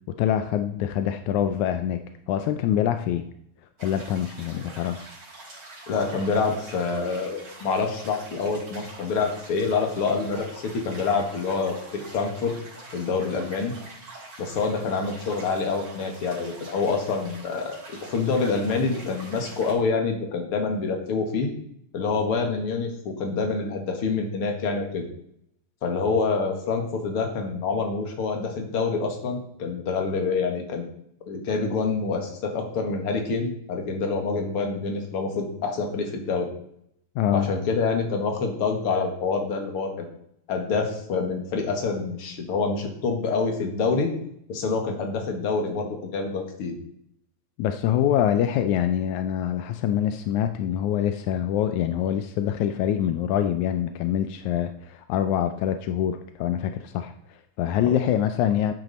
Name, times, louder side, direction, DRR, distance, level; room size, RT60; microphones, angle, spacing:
voice 1, 0.1-3.3 3.8-5.0 37.1-37.5 47.6-58.7, left 10 dB, 85° left, 8 dB, 1.7 m, -25 dB
sound 1, 3.8-19.7, right 2 dB, 35° right, 5.8 m, -45 dB
voice 2, 5.9-12.5 12.9-13.7 14.4-21.5 21.9-25.0 25.8-30.8 31.3-36.5 37.3-40.1 40.5-44.1 44.5-46.7, left 4 dB, 45° left, 3 dB, 2.3 m, -26 dB
12.0 x 8.9 x 4.2 m, 0.71 s
omnidirectional pair, 4.1 m